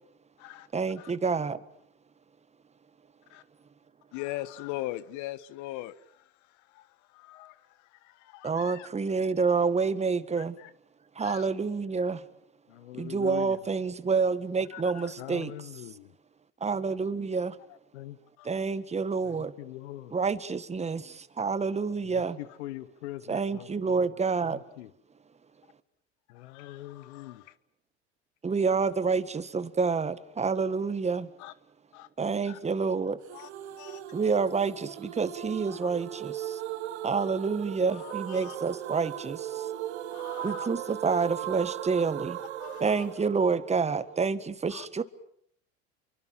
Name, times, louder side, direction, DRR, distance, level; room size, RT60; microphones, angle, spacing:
voice 1, 0.7-1.6 8.4-10.6 11.2-12.2 13.0-15.5 16.6-17.6 18.4-19.5 20.1-22.4 23.3-24.6 28.4-31.3 32.2-33.2 34.1-36.6 37.0-39.7 40.4-42.4 42.8-45.0, right 5 dB, 20° right, 1.7 m, -28 dB
voice 2, 4.1-8.9 10.4-10.7 11.2-11.5 14.7-15.1 17.7-17.8 18.4-18.5 22.5-22.6 26.3-27.5 31.4-31.5 31.9-32.1 32.4-32.6 33.3-33.5 33.8-34.0 35.8-35.9 37.9-38.6 40.1-40.7 42.6-43.1 44.7-44.9, left 16 dB, 60° left, 1.4 m, -42 dB
voice 3, 12.7-13.6 15.2-16.1 17.9-18.2 19.2-20.1 22.0-24.1 24.4-24.9 26.3-27.5, left 15 dB, 80° left, 1.3 m, -43 dB
sound 1, 33.3-44.2, right 13 dB, 85° right, 1.2 m, -38 dB
29.0 x 24.0 x 7.6 m
hypercardioid pair, 85°, 33 cm